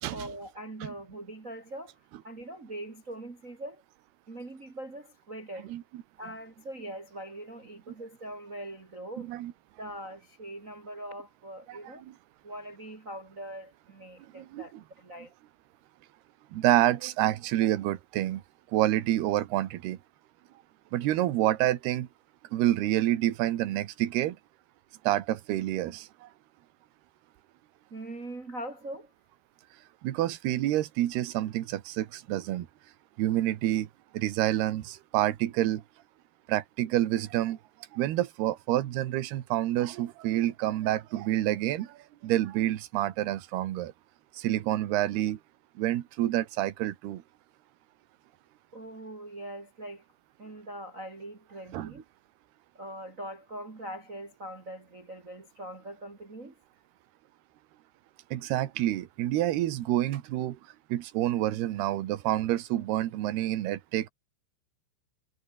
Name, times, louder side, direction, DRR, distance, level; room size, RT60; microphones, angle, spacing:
voice 1, 0.1-2.0 2.2-3.8 4.3-5.7 6.2-9.3 9.8-12.0 12.4-15.3 27.9-29.1 48.7-50.0 50.4-52.0 52.7-56.6, right 1 dB, 30° right, 1.5 m, -42 dB
voice 2, 5.7-6.0 9.2-9.5 11.7-11.8 14.3-14.8 16.5-18.4 18.7-20.0 20.9-22.1 22.5-24.4 25.0-26.3 30.0-32.7 33.2-33.9 34.1-35.8 36.5-37.6 37.9-43.9 44.3-45.4 45.8-47.2 51.7-51.9 58.3-60.6 60.9-64.1, right 14 dB, 70° right, 3.3 m, -28 dB
omnidirectional pair, 5.0 m